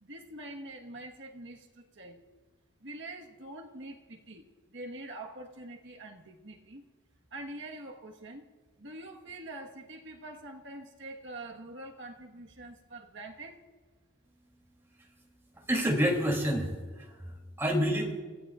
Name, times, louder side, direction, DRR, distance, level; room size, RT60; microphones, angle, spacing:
voice 1, 0.0-2.2 2.8-6.8 7.3-8.5 8.8-13.6, right 2 dB, 55° right, 2 dB, 1.4 m, -45 dB
voice 2, 15.5-17.3 17.6-18.2, equal, 10° right, -1 dB, 3.0 m, -28 dB
29.5 x 16.0 x 2.5 m, 1.4 s
head